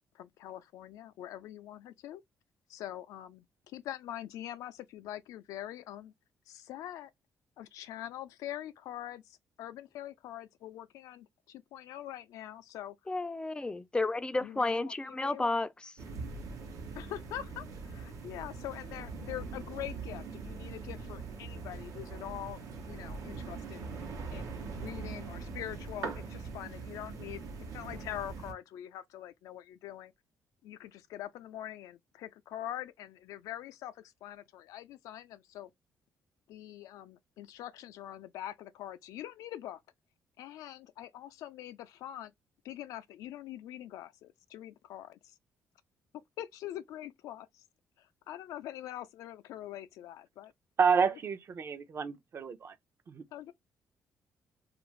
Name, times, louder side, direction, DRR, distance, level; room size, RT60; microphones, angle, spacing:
voice 1, 0.1-2.2 2.7-6.1 6.5-7.1 7.6-13.0 14.4-15.6 16.9-22.6 22.9-23.9 24.3-27.5 27.7-30.1 30.6-35.7 36.5-39.8 40.4-42.3 42.6-45.3 46.4-47.6 48.0-50.5 51.1-51.2 53.3-53.5, left 12 dB, 90° left, 0.4 m, -44 dB
voice 2, 13.1-15.9, left 2 dB, 15° left, 0.3 m, -32 dB
sound 1, 16.0-28.5, right 4 dB, 85° right, 0.9 m, -42 dB
voice 3, 50.8-52.7 53.1-53.2, right 6 dB, 50° right, 0.6 m, -29 dB
2.6 x 2.5 x 3.0 m
cardioid pair, 90°, 6 cm